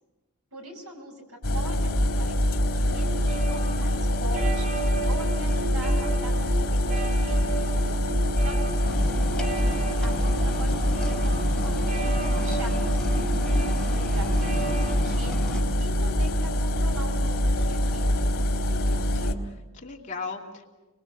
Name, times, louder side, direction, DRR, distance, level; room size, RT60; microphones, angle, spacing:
voice 1, 0.5-4.8 5.1-7.7 8.4-9.6 10.0-13.4 13.9-18.1, right 2 dB, 75° right, 3 dB, 5.7 m, -42 dB
sound 1, 1.4-19.3, equal, 80° left, 1.9 m, -24 dB
sound 2, 2.9-15.0, right 4 dB, 40° right, 2.6 m, -35 dB
voice 2, 7.8-8.6 9.0-9.1 18.7-20.6, left 4 dB, 35° left, -1 dB, 2.7 m, -40 dB
sound 3, 8.8-15.6, equal, 5° left, 3.0 m, -35 dB
30.0 x 21.0 x 6.2 m, 1.1 s
head